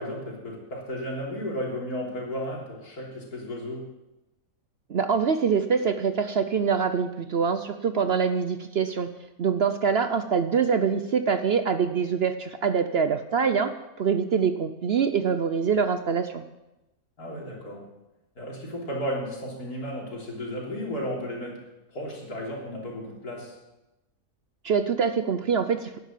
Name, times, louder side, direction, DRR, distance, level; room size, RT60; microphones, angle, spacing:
voice 1, 0.0-3.9 17.2-17.9 18.4-21.6 21.9-23.6, equal, 85° left, -2 dB, 3.9 m, -34 dB
voice 2, 4.9-9.1 9.4-16.4 24.6-26.0, right 6 dB, 55° right, 10 dB, 0.8 m, -24 dB
11.0 x 11.0 x 7.4 m, 0.98 s
omnidirectional pair, 1.6 m